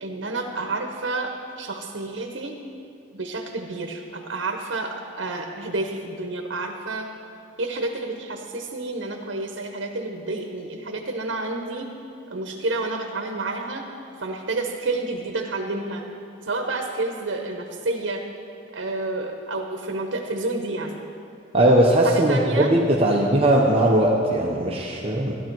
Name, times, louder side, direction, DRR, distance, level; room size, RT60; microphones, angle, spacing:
voice 1, 0.0-1.3 1.6-2.6 3.1-7.1 7.6-11.9 12.3-13.8 14.2-16.0 16.5-18.2 18.7-21.0 22.0-22.7 23.1-23.3, right 2 dB, 80° right, 3 dB, 1.0 m, -29 dB
voice 2, 21.5-25.3, right 1 dB, 30° right, -2 dB, 0.9 m, -19 dB
13.5 x 11.5 x 4.6 m, 2.5 s
head